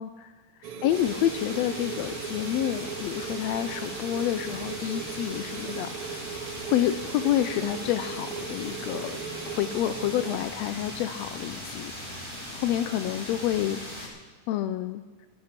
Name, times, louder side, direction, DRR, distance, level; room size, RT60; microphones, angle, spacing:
voice 1, 0.0-0.3 0.8-6.3 6.6-9.2 9.5-11.9 12.2-12.3 12.5-14.1 14.5-15.0, left 12 dB, 85° left, 10 dB, 1.5 m, -29 dB
sound 1, 0.6-10.4, right 8 dB, 65° right, 1.4 m, -38 dB
sound 2, 0.9-14.1, left 1 dB, 10° left, 2.8 m, -39 dB
16.0 x 11.5 x 5.9 m, 1.4 s
omnidirectional pair, 3.6 m